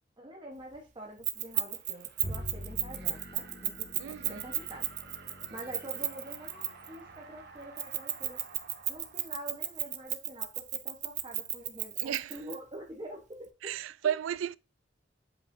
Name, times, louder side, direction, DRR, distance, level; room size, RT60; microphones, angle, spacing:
voice 1, 0.2-4.9 5.5-8.4 8.9-13.7, right 1 dB, 25° right, 1.0 m, -46 dB
Keys jangling, 1.2-6.9 7.8-12.5, right 13 dB, 40° right, 0.6 m, -33 dB
sound 1, 1.3-10.2, right 4 dB, 55° right, 1.1 m, -53 dB
Bowed string instrument, 2.2-8.7, equal, 25° left, 1.7 m, -47 dB
voice 2, 4.0-4.5 12.0-12.4 13.6-14.6, right 9 dB, 85° right, 0.3 m, -33 dB
7.5 x 5.4 x 2.6 m
head